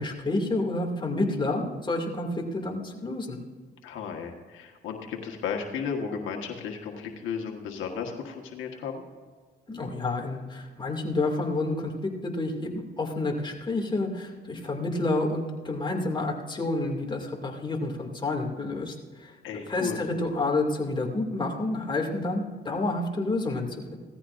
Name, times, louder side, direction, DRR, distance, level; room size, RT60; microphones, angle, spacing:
voice 1, 0.0-3.4 9.7-11.9 12.2-19.3 19.7-24.0, left 2 dB, 25° left, 0 dB, 2.4 m, -29 dB
voice 2, 3.8-9.0 19.4-20.0, left 6 dB, 85° left, 2 dB, 1.4 m, -34 dB
17.0 x 14.0 x 2.5 m, 1.5 s
cardioid pair, 90°, 20 cm